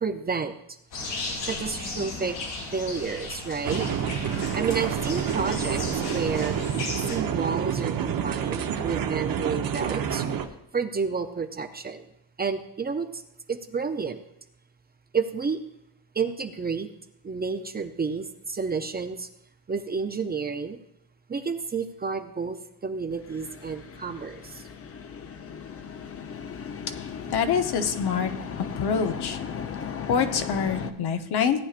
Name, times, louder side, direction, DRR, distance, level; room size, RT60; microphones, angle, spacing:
voice 1, 0.0-0.5 1.5-2.4 2.7-3.8 4.5-6.6 7.1-10.2 10.7-12.0 12.4-13.2 13.5-14.2 15.1-15.6 16.2-16.9 17.2-19.3 19.7-20.8 21.3-24.6, right 5 dB, 25° right, 7 dB, 0.5 m, -30 dB
sound 1, 0.9-7.2, left 2 dB, 85° left, 4.0 m, -35 dB
sound 2, 3.6-10.5, right 8 dB, 55° right, 0.9 m, -28 dB
sound 3, 23.1-30.9, left 7 dB, 35° left, 0.7 m, -37 dB
voice 2, 26.9-28.3 28.8-29.4 30.1-31.6, left 6 dB, 65° left, 7 dB, 1.0 m, -25 dB
17.0 x 9.8 x 2.5 m, 0.76 s
cardioid pair, 140°, 41 cm